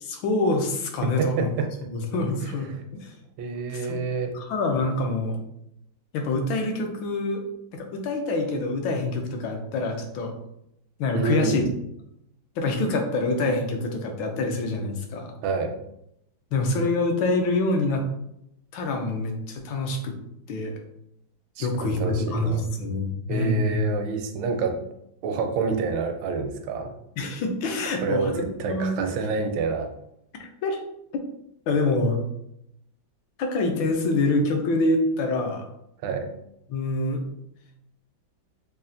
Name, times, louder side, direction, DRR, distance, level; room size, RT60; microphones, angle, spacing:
voice 1, 0.0-1.5 1.9-3.1 3.7-4.0 4.3-5.4 6.1-7.4 7.7-10.3 11.0-11.6 12.6-15.3 16.5-18.0 18.7-20.1 20.5-20.8 21.6-23.8 27.2-28.9 30.4-30.8 31.7-32.2 33.4-35.7 36.7-37.2, left 2 dB, 80° left, 4 dB, 1.4 m, -26 dB
voice 2, 1.0-1.7 3.4-4.3 11.1-11.7 15.4-15.7 21.6-22.6 23.3-24.8 25.2-26.9 28.0-29.9 36.0-36.3, right 4 dB, 80° right, 5 dB, 1.3 m, -28 dB
5.4 x 2.4 x 2.5 m, 0.79 s
omnidirectional pair, 2.1 m